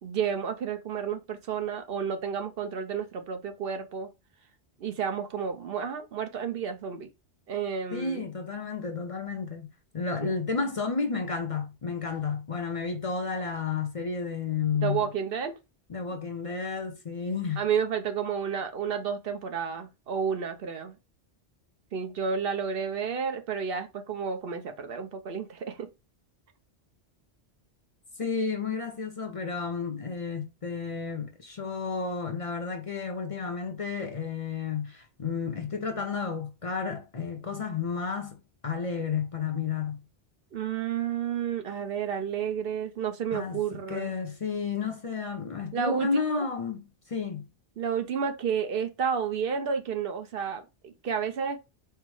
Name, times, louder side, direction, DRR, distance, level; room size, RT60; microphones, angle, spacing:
voice 1, 0.0-4.1 4.8-7.1 7.5-8.2 10.2-10.3 14.7-15.6 17.6-21.0 21.9-25.9 40.5-44.1 45.7-46.5 47.8-51.6, right 7 dB, 60° right, 0.9 m, -31 dB
voice 2, 7.9-9.7 9.9-15.1 15.9-17.7 28.2-38.4 38.6-40.0 43.3-43.6 43.9-47.5, left 5 dB, 40° left, 0.5 m, -32 dB
4.5 x 2.1 x 4.6 m
omnidirectional pair, 1.1 m